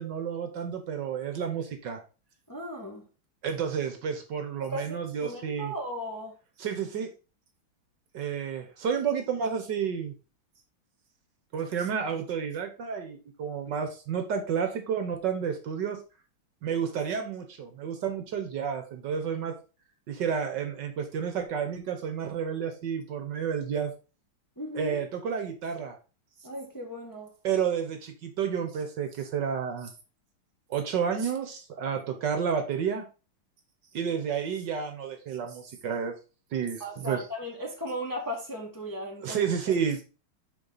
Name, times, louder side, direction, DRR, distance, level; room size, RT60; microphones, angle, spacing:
voice 1, 0.0-2.0 3.4-5.7 6.6-7.1 8.1-10.1 11.5-16.0 16.6-19.5 20.1-23.9 24.7-26.0 27.4-29.9 30.7-33.0 33.9-36.1 36.5-37.2 39.2-40.0, right 7 dB, 65° right, 1.5 m, -31 dB
voice 2, 2.5-3.0 4.6-6.3 24.6-25.0 26.4-27.3 36.8-39.7, equal, 10° left, 1.2 m, -36 dB
6.9 x 5.3 x 3.9 m
omnidirectional pair, 2.3 m